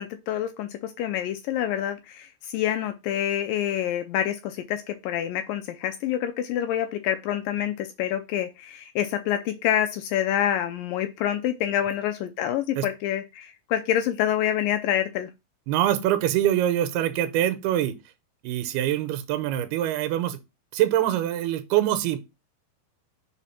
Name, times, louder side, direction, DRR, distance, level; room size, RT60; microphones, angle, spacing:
voice 1, 0.0-15.3, left 11 dB, 80° left, 2.0 m, -27 dB
voice 2, 15.7-18.0 18.4-20.4 20.7-22.2, right 12 dB, 90° right, 2.8 m, -24 dB
5.0 x 4.7 x 5.6 m
omnidirectional pair, 4.5 m